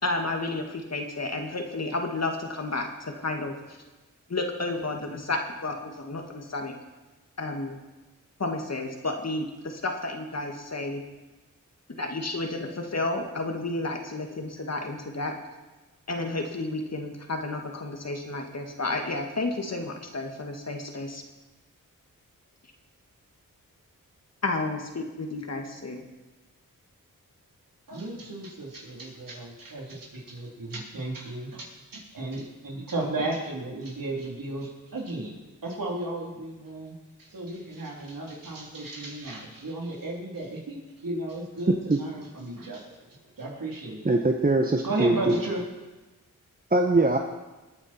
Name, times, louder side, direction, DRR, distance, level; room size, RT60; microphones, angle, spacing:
voice 1, 0.0-3.8 4.3-6.7 7.4-7.8 8.4-11.0 12.0-15.3 16.1-21.2 24.4-26.0, left 2 dB, 50° left, 3 dB, 2.0 m, -31 dB
voice 2, 27.9-35.4 35.6-44.2 44.8-45.6, right 2 dB, 75° right, -2 dB, 3.4 m, -34 dB
voice 3, 41.7-42.0 44.0-45.4 46.7-47.2, right 2 dB, 25° right, 3 dB, 1.0 m, -22 dB
20.0 x 8.9 x 4.4 m, 1.1 s
cardioid pair, 55°, 34 cm